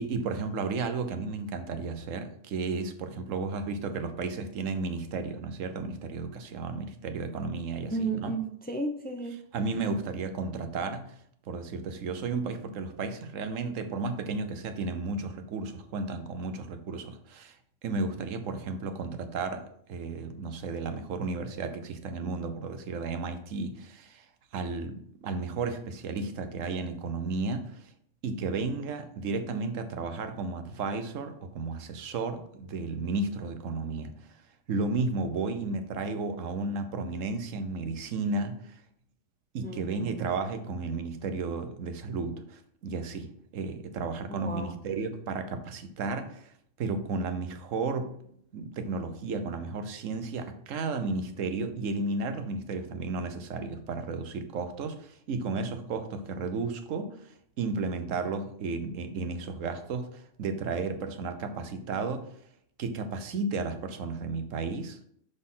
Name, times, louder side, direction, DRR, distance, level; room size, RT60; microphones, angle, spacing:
voice 1, 0.0-8.3 9.5-11.1 11.5-17.6 17.8-24.3 24.5-27.9 28.2-34.1 34.7-38.8 39.5-48.2 48.5-62.3 62.8-65.0, right 3 dB, 90° right, 1.2 m, -33 dB
voice 2, 7.9-9.4 39.6-40.2 44.3-44.8, right 3 dB, 10° left, 0.4 m, -34 dB
6.6 x 4.2 x 5.5 m
omnidirectional pair, 1.3 m